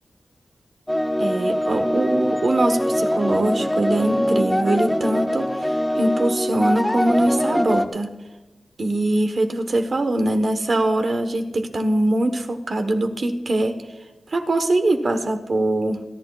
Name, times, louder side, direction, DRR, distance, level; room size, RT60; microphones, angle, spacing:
sound 1, 0.9-7.9, equal, 5° left, 0.6 m, -23 dB
voice 1, 1.2-8.2 8.8-13.8 14.3-16.0, right 1 dB, 55° right, 7 dB, 1.1 m, -22 dB
28.5 x 11.0 x 2.4 m, 1.1 s
wide cardioid pair, 135°, 0 cm